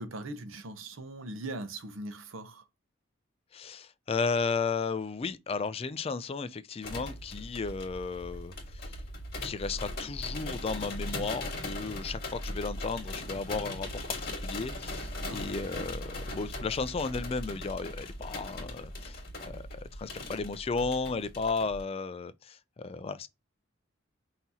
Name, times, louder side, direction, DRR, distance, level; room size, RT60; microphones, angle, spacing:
voice 1, 0.0-2.6 14.9-15.4, right 2 dB, 90° right, 0.8 m, -40 dB
voice 2, 3.5-9.0 9.4-23.3, left 4 dB, 30° left, 0.3 m, -34 dB
sound 1, 6.8-21.8, left 1 dB, 50° left, 1.7 m, -39 dB
5.6 x 2.8 x 2.8 m
head